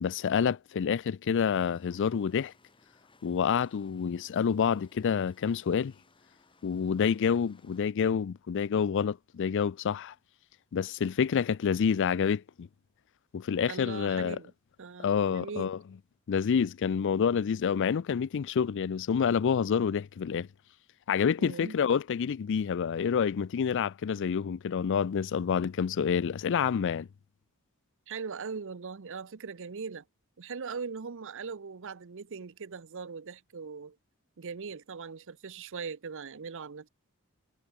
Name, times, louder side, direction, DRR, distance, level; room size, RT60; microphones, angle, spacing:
voice 1, 0.0-2.5 3.2-5.9 6.6-10.1 10.7-12.7 13.3-14.4 15.0-15.8 16.3-20.5 21.1-27.1, left 7 dB, 55° left, 0.4 m, -28 dB
sound 1, 1.5-7.9, left 3 dB, 25° left, 4.0 m, -64 dB
voice 2, 13.7-14.5 14.8-15.7 21.4-21.8 28.1-30.0 30.4-34.0 34.4-36.9, right 5 dB, 60° right, 0.7 m, -40 dB
head